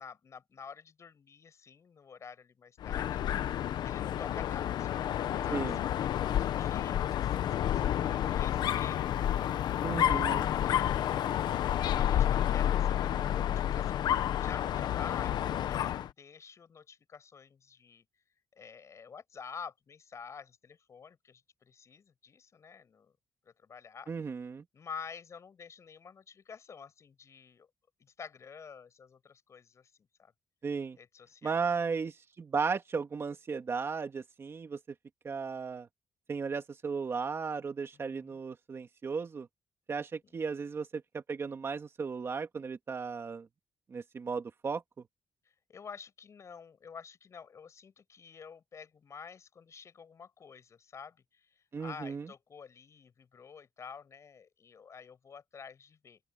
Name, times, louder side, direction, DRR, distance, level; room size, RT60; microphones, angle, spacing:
voice 1, 0.0-3.4 3.8-9.7 10.4-11.3 11.8-18.0 18.5-23.1 23.5-24.1 24.7-27.7 28.0-30.3 31.0-31.7 37.9-38.4 40.2-40.3 45.7-51.5 51.8-56.2, left 6 dB, 45° left, 7.4 m, -49 dB
Dog, 2.8-16.1, left 11 dB, 80° left, 0.9 m, -30 dB
voice 2, 9.8-10.5 24.1-24.6 30.6-31.0 31.4-34.8 35.2-35.9 36.3-39.5 39.9-43.5 43.9-44.8 51.7-52.3, right 5 dB, 35° right, 2.3 m, -35 dB
open air
cardioid pair, 140°, 7 cm